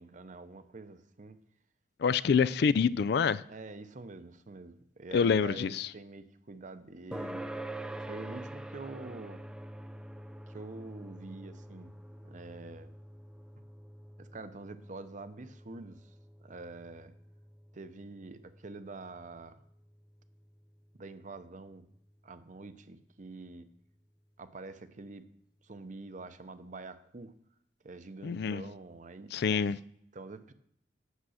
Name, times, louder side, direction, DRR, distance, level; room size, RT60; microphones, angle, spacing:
voice 1, 0.0-1.4 3.5-7.5 8.0-9.4 10.5-11.9 12.2-12.9 13.5-13.6 14.2-16.1 16.4-17.1 17.7-19.6 21.0-21.9 22.2-23.7 24.4-25.3 25.6-27.3 27.8-29.7 30.1-30.5, right 3 dB, 45° right, 0.7 m, -46 dB
voice 2, 2.0-3.4 5.1-5.9 28.2-28.6 29.3-29.8, left 6 dB, 65° left, 0.4 m, -26 dB
sound 1, 7.1-22.0, right 1 dB, 5° right, 0.4 m, -46 dB
8.2 x 7.5 x 6.4 m
head